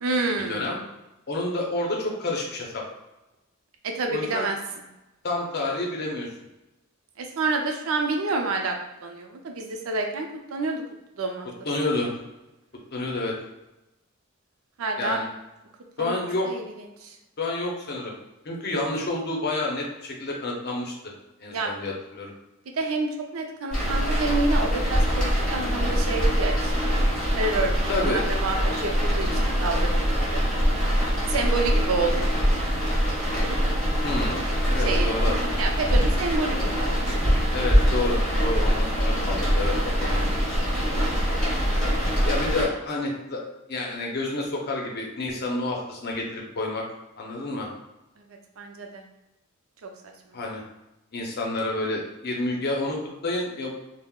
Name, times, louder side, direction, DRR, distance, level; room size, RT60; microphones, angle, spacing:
voice 1, 0.0-0.7 3.8-4.6 7.2-8.8 9.0-10.8 11.2-11.5 14.8-15.2 16.0-16.6 17.0-17.2 21.5-21.7 22.7-27.0 27.3-28.6 28.8-30.5 31.3-32.3 34.8-35.1 35.6-37.4 41.4-41.6 48.3-49.1 49.8-50.1, right 3 dB, 85° right, 3 dB, 0.5 m, -29 dB
voice 2, 1.3-2.8 4.1-4.5 5.2-6.3 11.6-12.1 12.9-13.3 15.0-15.3 16.0-16.5 17.4-18.1 18.4-20.9 21.4-22.3 27.9-28.3 34.0-34.4 34.7-35.7 37.5-39.7 40.0-40.5 41.8-43.4 43.7-46.8 47.2-47.7 50.3-50.6 51.1-53.7, left 2 dB, 50° left, -1 dB, 0.6 m, -29 dB
sound 1, 23.7-42.6, equal, 5° left, 1.1 m, -23 dB
3.5 x 2.0 x 2.3 m, 0.97 s
head